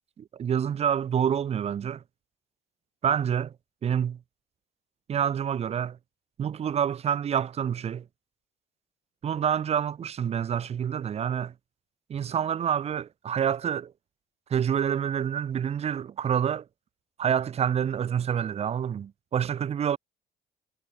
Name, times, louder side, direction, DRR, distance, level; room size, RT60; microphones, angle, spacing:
voice 1, 0.2-2.0 3.0-3.5 3.8-4.2 5.1-6.0 6.4-8.1 9.2-11.5 12.1-13.9 14.5-16.6 17.2-20.0, right 8 dB, 40° right, 0.8 m, -27 dB
cardioid pair, 110°, 17 cm